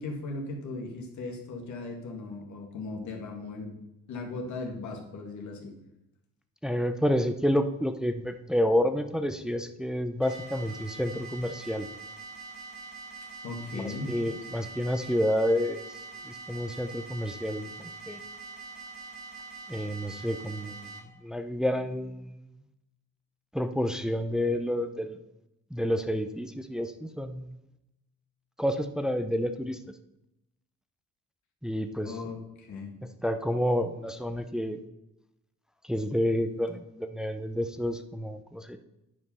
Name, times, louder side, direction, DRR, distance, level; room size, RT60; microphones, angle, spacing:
voice 1, 0.0-3.8 4.1-5.7 13.4-14.2 32.0-32.9, left 3 dB, 70° left, 1 dB, 2.1 m, -37 dB
voice 2, 6.6-11.9 13.7-18.2 19.7-20.9 21.2-22.5 23.5-25.2 25.7-27.6 28.6-29.8 31.6-32.1 33.2-34.8 35.8-38.8, equal, ahead, 8 dB, 0.6 m, -29 dB
sound 1, 10.2-21.0, right 4 dB, 60° right, 2.2 m, -44 dB
9.7 x 5.1 x 5.5 m, 0.88 s
cardioid pair, 90°, 30 cm